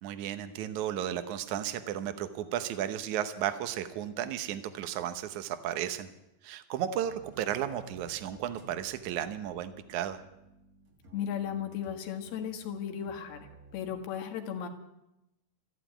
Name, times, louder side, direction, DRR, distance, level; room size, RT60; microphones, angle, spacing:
voice 1, 0.0-6.1 6.4-10.2, right 10 dB, 75° right, 10 dB, 1.8 m, -34 dB
sound 1, 6.9-14.0, right 3 dB, 40° right, 1.3 m, -55 dB
voice 2, 11.1-13.5 13.7-14.7, left 8 dB, 75° left, 5 dB, 3.6 m, -35 dB
14.0 x 11.0 x 9.3 m, 0.90 s
omnidirectional pair, 4.7 m